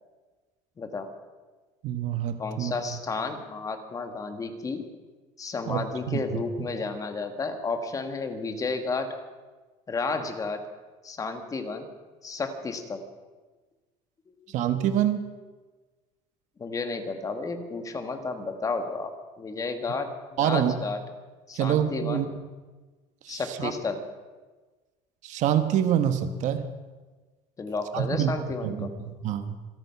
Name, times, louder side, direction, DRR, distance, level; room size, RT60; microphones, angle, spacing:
voice 1, 0.8-1.1 2.4-4.9 5.4-9.2 9.9-10.6 11.0-11.9 12.2-13.0 14.3-14.4 16.6-20.1 20.4-21.0 21.5-22.3 23.3-24.0 27.6-29.0, left 4 dB, 25° left, 7 dB, 1.7 m, -32 dB
voice 2, 1.8-2.7 5.7-6.4 14.5-15.2 20.4-20.8 21.5-22.3 23.2-23.7 25.2-26.7 27.9-28.3 28.6-29.6, right 10 dB, 55° right, 10 dB, 1.2 m, -26 dB
26.5 x 9.0 x 5.8 m, 1.3 s
cardioid pair, 135°, 15 cm